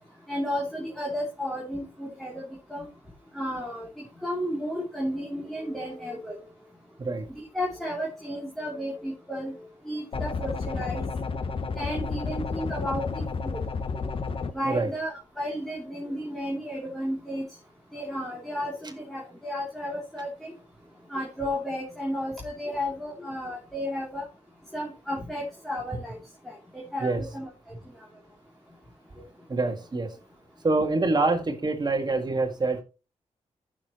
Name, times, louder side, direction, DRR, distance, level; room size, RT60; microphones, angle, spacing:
voice 1, 0.3-2.4 2.7-2.9 3.3-3.9 4.2-6.4 7.5-9.5 9.8-11.0 11.8-13.6 14.5-17.4 17.9-20.5 21.1-24.3 24.7-26.2 26.4-27.5 29.2-29.3, equal, ahead, -3 dB, 3.1 m, -33 dB
sound 1, 10.1-14.5, left 4 dB, 45° left, 1.0 m, -31 dB
voice 2, 29.5-30.1 30.6-32.8, right 3 dB, 35° right, 5 dB, 1.8 m, -25 dB
14.5 x 6.5 x 3.0 m, 0.31 s
cardioid pair, 95°, 12 cm